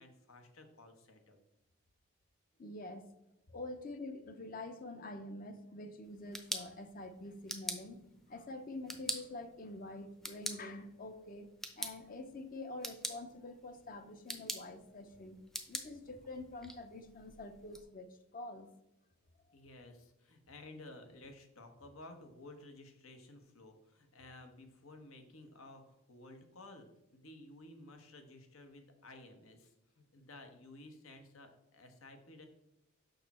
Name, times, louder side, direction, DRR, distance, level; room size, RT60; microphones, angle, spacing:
voice 1, 0.0-1.4 19.5-26.9 27.1-32.5, left 2 dB, 80° left, 6 dB, 1.2 m, -54 dB
voice 2, 2.6-3.1 3.5-11.5 11.8-15.4 15.7-18.1 18.3-18.7, left 2 dB, 40° left, 9 dB, 0.7 m, -46 dB
sound 1, 6.0-17.8, equal, ahead, 0.6 m, -46 dB
6.6 x 5.9 x 4.2 m, 0.85 s
head